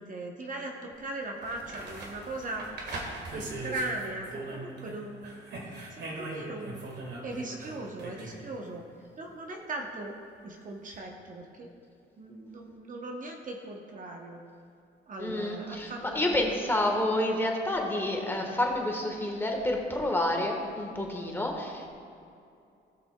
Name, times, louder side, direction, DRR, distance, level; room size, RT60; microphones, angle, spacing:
voice 1, 0.0-2.6 3.3-5.4 5.9-8.8 9.2-10.2 10.4-11.7 12.2-14.4 15.1-16.7, right 2 dB, 40° right, 1 dB, 0.9 m, -39 dB
sound 1, 0.9-1.0 1.4-5.0 5.2-8.4 10.9-11.0, right 2 dB, 60° right, 1.7 m, -40 dB
voice 2, 15.2-21.9, left 1 dB, 10° left, 1 dB, 1.4 m, -29 dB
17.0 x 5.9 x 2.3 m, 2.5 s
cardioid pair, 90°, 20 cm